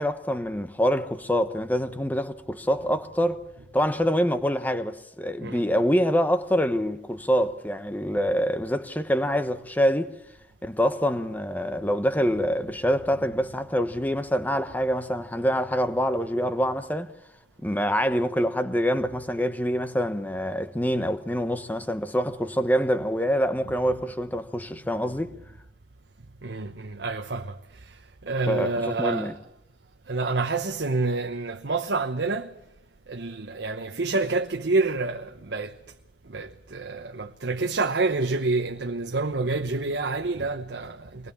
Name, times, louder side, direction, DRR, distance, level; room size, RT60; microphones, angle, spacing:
voice 1, 0.0-3.5 3.7-10.1 10.6-17.1 17.6-25.3 28.5-29.3, equal, 10° left, 1.1 m, -25 dB
voice 2, 26.4-28.0 28.2-29.3 30.1-32.5 33.1-35.8 36.3-41.3, right 3 dB, 75° right, 1.0 m, -28 dB
23.5 x 19.5 x 7.2 m
head